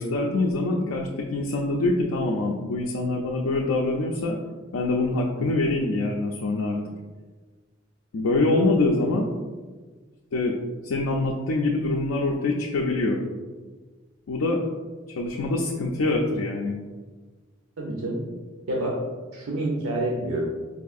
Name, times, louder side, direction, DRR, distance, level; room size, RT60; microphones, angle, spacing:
voice 1, 0.0-4.4 4.7-6.8 8.1-9.3 10.3-10.6 10.8-13.3 14.3-14.6 15.2-16.8, left 2 dB, 85° left, 0 dB, 0.4 m, -24 dB
voice 2, 17.8-18.2 18.7-19.0 19.3-20.4, right 1 dB, 85° right, -2 dB, 0.6 m, -27 dB
4.6 x 2.6 x 2.4 m, 1.3 s
head